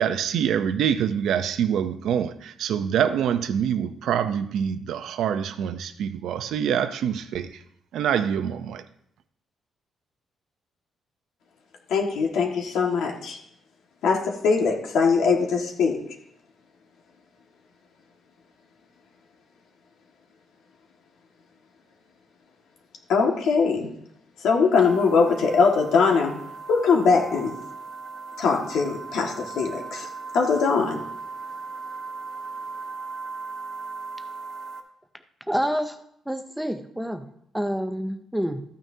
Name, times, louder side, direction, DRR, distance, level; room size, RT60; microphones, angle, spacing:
voice 1, 0.0-7.6 7.9-8.8, right 8 dB, 75° right, 0.6 m, -25 dB
voice 2, 11.9-13.4 14.0-16.0 23.1-23.9 24.4-26.3 26.7-27.5 28.4-30.1 30.3-31.0, left 5 dB, 80° left, 1.7 m, -21 dB
sound 1, 24.7-34.8, right 4 dB, 55° right, 1.0 m, -38 dB
voice 3, 35.5-36.0 36.3-37.3 37.5-38.6, equal, ahead, 0.5 m, -27 dB
14.0 x 9.1 x 2.8 m
cardioid pair, 170°, 0 cm